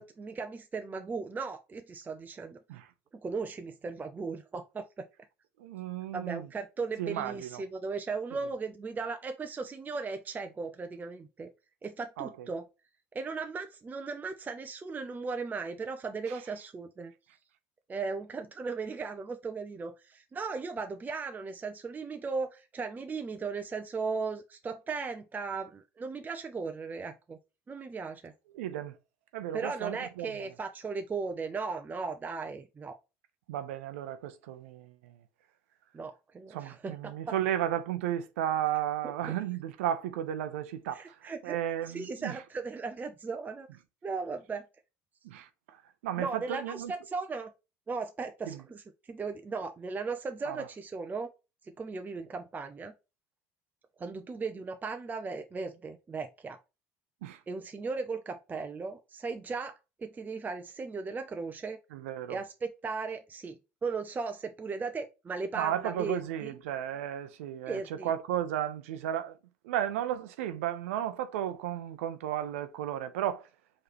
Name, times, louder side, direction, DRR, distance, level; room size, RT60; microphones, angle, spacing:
voice 1, 0.0-2.6 3.2-4.9 6.1-11.5 11.8-12.6 13.1-17.1 17.9-27.4 27.7-28.3 29.5-32.9 35.9-37.3 40.9-41.6 41.9-43.7 44.0-44.6 46.2-47.5 47.9-51.3 51.6-52.9 54.0-56.6 57.5-61.8 62.3-66.5 67.7-68.1, right 4 dB, 25° right, 0.6 m, -37 dB
voice 2, 5.6-6.5 7.0-7.6 12.2-12.5 28.5-28.9 29.3-30.3 33.5-35.2 36.5-42.4 45.2-45.8 46.0-46.9 48.5-48.6 50.4-50.7 57.2-57.4 61.9-62.4 65.6-69.4 69.6-73.5, right 11 dB, 80° right, 0.6 m, -34 dB
4.8 x 3.2 x 3.0 m
hypercardioid pair, 80°, 7 cm